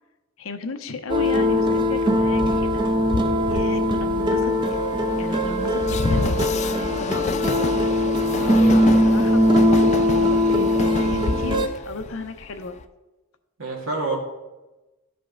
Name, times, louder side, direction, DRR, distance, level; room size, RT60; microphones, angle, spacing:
voice 1, 0.4-2.8 3.5-4.5 5.2-7.5 9.0-12.8, left 3 dB, 80° left, 7 dB, 0.8 m, -34 dB
sound 1, 1.1-11.7, left 1 dB, 20° right, 0.6 m, -20 dB
Train, 2.4-12.8, left 4 dB, 35° left, 0.3 m, -29 dB
voice 2, 8.4-9.0 13.6-14.2, right 3 dB, 90° right, -1 dB, 2.2 m, -28 dB
12.5 x 5.2 x 3.9 m, 1.1 s
head